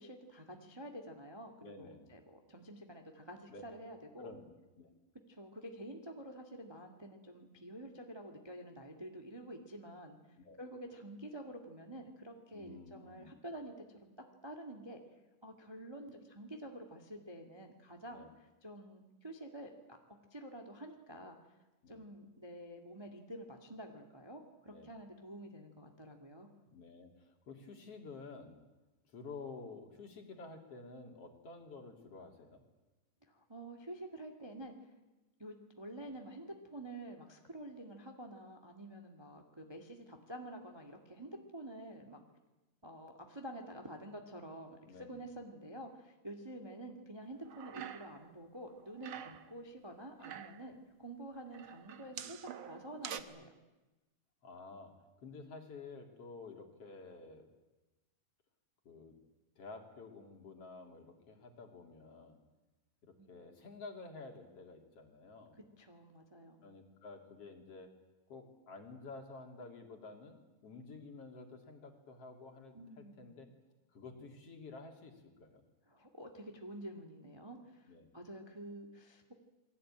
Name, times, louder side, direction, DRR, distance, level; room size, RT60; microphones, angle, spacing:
voice 1, 0.0-4.3 5.3-10.2 10.6-13.7 14.0-14.1 14.4-15.0 15.4-18.2 18.6-20.0 20.3-21.4 21.9-26.5 33.2-34.9 35.4-42.2 42.8-53.5 63.2-63.4 65.8-66.6 72.7-73.4 75.9-77.9 78.1-79.3, right 1 dB, 10° right, 3 dB, 1.3 m, -49 dB
voice 2, 1.6-2.2 3.5-3.6 4.2-4.5 4.8-4.9 10.4-10.6 12.5-13.3 18.1-18.3 21.8-22.1 24.7-24.9 26.7-28.6 29.1-32.6 44.9-45.2 54.4-54.9 55.2-57.5 58.9-59.2 59.6-62.4 63.0-65.6 66.6-67.9 68.3-73.5 73.9-75.6 77.9-78.1, left 3 dB, 45° left, 3 dB, 3.6 m, -51 dB
sound 1, 47.4-48.3 48.6-49.5 50.0-50.7 51.5-53.2, right 10 dB, 60° right, 1.3 m, -46 dB
28.0 x 20.5 x 8.9 m, 1.1 s
omnidirectional pair, 3.8 m